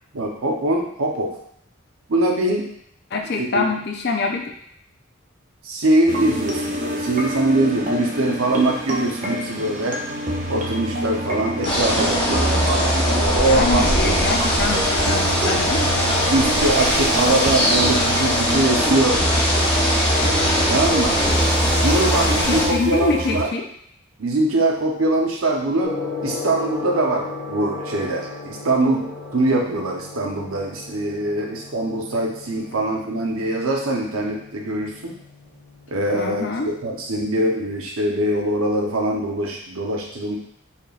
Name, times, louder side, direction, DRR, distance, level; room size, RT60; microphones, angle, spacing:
voice 1, 0.1-1.4 2.1-2.7 3.3-3.6 5.6-10.0 10.5-14.0 15.8-15.9 16.3-19.3 20.7-21.2 21.7-23.5 24.2-26.0 26.2-35.2 35.9-40.4, right 2 dB, 85° right, 0 dB, 0.8 m, -22 dB
voice 2, 3.1-4.5 13.5-15.8 17.3-17.4 22.1-23.7 36.1-36.7, left 3 dB, 50° left, 3 dB, 0.5 m, -25 dB
sound 1, 6.1-23.4, equal, 35° right, 0.6 m, -26 dB
sound 2, 11.6-22.7, equal, 25° left, 0.9 m, -21 dB
Gong, 25.8-37.8, left 3 dB, 70° left, 1.2 m, -36 dB
4.3 x 3.4 x 2.4 m, 0.67 s
head